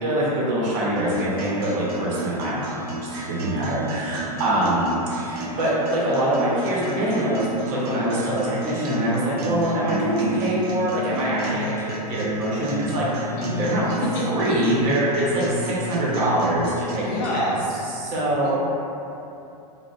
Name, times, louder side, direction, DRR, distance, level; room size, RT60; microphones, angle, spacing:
voice 1, 0.0-13.3 13.6-13.8 14.3-17.5 17.8-18.5, right 1 dB, 45° right, -7 dB, 0.8 m, -24 dB
sound 1, 1.0-17.0, right 1 dB, 70° right, 0.4 m, -32 dB
voice 2, 13.4-14.2 17.0-17.6 18.4-18.5, left 1 dB, 45° left, -5 dB, 0.5 m, -28 dB
2.4 x 2.1 x 2.5 m, 2.8 s
hypercardioid pair, 115°, 20 cm